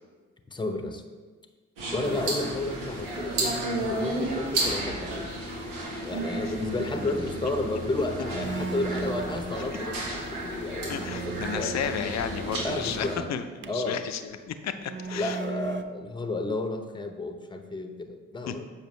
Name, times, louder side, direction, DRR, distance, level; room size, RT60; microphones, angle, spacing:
voice 1, 0.5-1.0 1.9-5.3 6.0-11.8 12.6-13.4 13.7-14.0 15.1-18.6, left 2 dB, 15° left, 6 dB, 0.8 m, -32 dB
sound 1, 1.8-13.1, right 1 dB, 85° right, 1.3 m, -32 dB
sound 2, 8.4-10.0 10.4-10.5 10.9-13.9 14.8-15.8, right 5 dB, 35° right, 0.5 m, -37 dB
voice 2, 10.9-13.4 13.7-14.2 14.5-15.4 18.5-18.6, left 8 dB, 55° left, 9 dB, 0.6 m, -32 dB
7.0 x 5.0 x 3.1 m, 1.4 s
hypercardioid pair, 40°, 33 cm